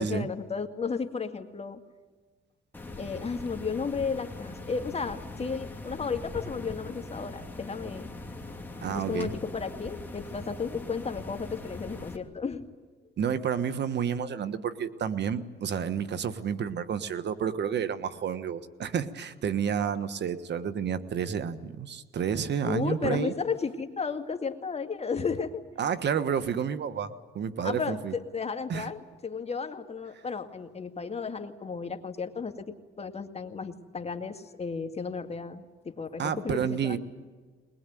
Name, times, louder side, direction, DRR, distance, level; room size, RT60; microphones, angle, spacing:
voice 1, 0.0-1.8 3.0-8.1 8.4-12.7 22.6-25.6 27.6-37.0, left 5 dB, 30° left, 6 dB, 2.1 m, -34 dB
sound 1, 2.7-12.2, left 2 dB, 10° left, 2.8 m, -41 dB
voice 2, 8.8-9.3 13.2-23.3 25.8-28.1 28.7-28.9 36.2-37.0, right 7 dB, 60° right, 12 dB, 1.4 m, -30 dB
21.5 x 21.0 x 9.3 m, 1.4 s
cardioid pair, 90°, 20 cm